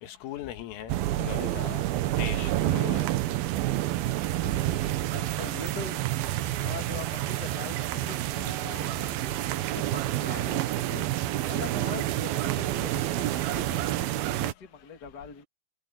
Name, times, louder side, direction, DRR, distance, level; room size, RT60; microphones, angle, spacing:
voice 1, 0.0-0.9 1.2-1.8 2.2-3.2, left 11 dB, 85° left, 4.5 m, -38 dB
sound 1, 0.9-14.5, right 14 dB, 80° right, 2.2 m, -29 dB
voice 2, 4.4-4.8 5.1-6.0 6.5-11.1 11.5-15.4, left 6 dB, 25° left, 2.5 m, -42 dB
omnidirectional pair, 5.6 m